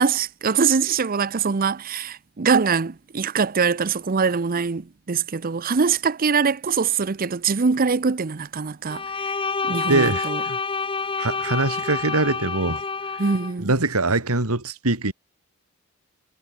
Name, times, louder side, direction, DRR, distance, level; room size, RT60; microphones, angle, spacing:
voice 1, 0.0-9.0 9.7-10.4 13.2-13.7, right 5 dB, 40° right, 0.6 m, -23 dB
Bowed string instrument, 8.9-13.5, left 4 dB, 25° left, 1.1 m, -28 dB
voice 2, 9.7-10.6 11.2-12.8 13.1-13.2 13.6-15.1, right 2 dB, 80° right, 3.0 m, -23 dB
head